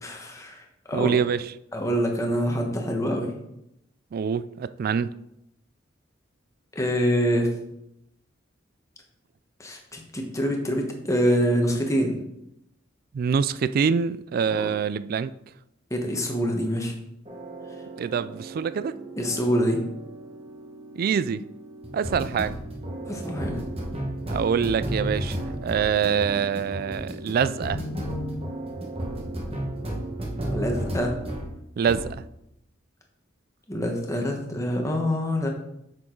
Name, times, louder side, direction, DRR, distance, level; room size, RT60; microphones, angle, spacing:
voice 1, 0.0-1.1 1.7-3.3 6.7-7.5 9.6-12.2 14.5-14.7 15.9-16.9 19.2-19.8 23.1-23.6 30.5-31.1 33.7-35.5, equal, 15° left, 1.2 m, -25 dB
voice 2, 0.9-1.4 4.1-5.1 13.1-15.3 18.0-18.9 20.9-21.4 21.9-22.6 24.3-27.8 31.8-32.2, right 6 dB, 50° right, 0.3 m, -25 dB
sound 1, 17.3-31.5 31.9-32.2, right 1 dB, 30° right, 1.3 m, -33 dB
7.3 x 6.3 x 3.9 m
head